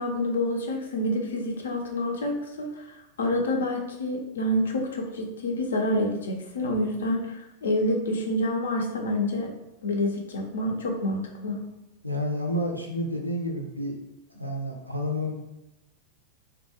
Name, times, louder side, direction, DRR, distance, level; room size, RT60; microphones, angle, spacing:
voice 1, 0.0-9.5 9.8-11.6, left 1 dB, 65° left, 2 dB, 0.4 m, -28 dB
voice 2, 12.0-14.0 14.3-15.4, left 1 dB, 90° right, 1 dB, 0.4 m, -30 dB
2.2 x 2.1 x 2.8 m, 0.92 s
figure-of-eight pair, 90°, 0 cm